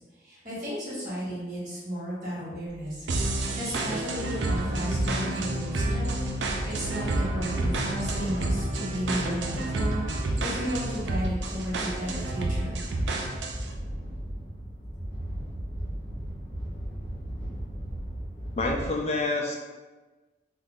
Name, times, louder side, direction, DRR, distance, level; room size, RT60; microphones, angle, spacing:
voice 1, 0.2-6.2 6.7-12.8, equal, 50° right, -9 dB, 1.5 m, -34 dB
Organ, 2.7-13.1, left 1 dB, 15° right, 0.8 m, -39 dB
sound 1, 3.1-13.7, right 2 dB, 75° right, 0.4 m, -30 dB
sound 2, 6.1-18.9, right 1 dB, 15° left, 1.0 m, -37 dB
voice 2, 18.6-19.6, left 2 dB, 35° left, 0 dB, 0.3 m, -27 dB
2.7 x 2.4 x 3.7 m, 1.2 s
head